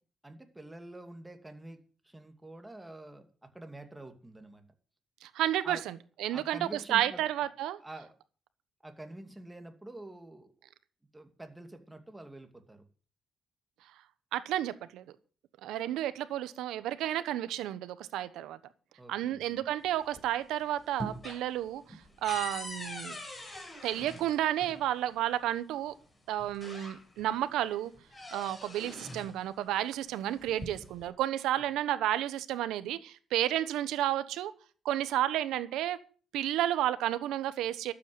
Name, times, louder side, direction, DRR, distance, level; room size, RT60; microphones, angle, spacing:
voice 1, 0.2-1.8 2.0-4.6 5.6-5.8 6.3-7.2 7.8-8.1 8.8-10.5 11.1-12.8 19.0-19.6, right 1 dB, 10° right, 2.5 m, -47 dB
voice 2, 5.2-7.8 14.3-15.0 15.6-18.6 19.1-21.8 22.2-23.2 23.8-25.9 26.3-27.9 28.3-34.5 34.8-36.0 36.3-37.9, right 12 dB, 90° right, 1.1 m, -31 dB
Squeaky Door Opened, 19.8-20.5 20.8-24.8 25.9-26.0 26.4-27.3 27.7-29.4 30.3-31.1, left 1 dB, 25° left, 5.9 m, -43 dB
12.5 x 8.6 x 7.7 m
cardioid pair, 90°, 0 cm